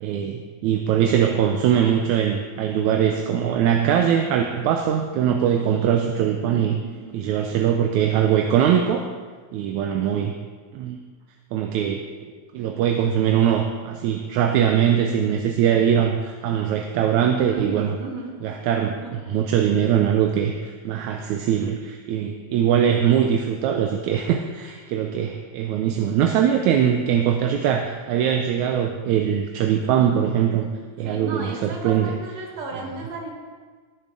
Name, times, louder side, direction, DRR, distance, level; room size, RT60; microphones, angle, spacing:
voice 1, 0.0-6.8 7.1-9.1 9.5-10.3 10.7-11.0 11.5-18.0 18.4-30.7 31.0-32.1, right 9 dB, 80° right, 4 dB, 2.0 m, -22 dB
voice 2, 6.8-7.3 17.5-18.5 19.0-19.1 22.1-22.6 31.0-33.3, right 2 dB, 60° right, 0 dB, 2.7 m, -35 dB
20.5 x 6.9 x 3.8 m, 1.5 s
omnidirectional pair, 3.5 m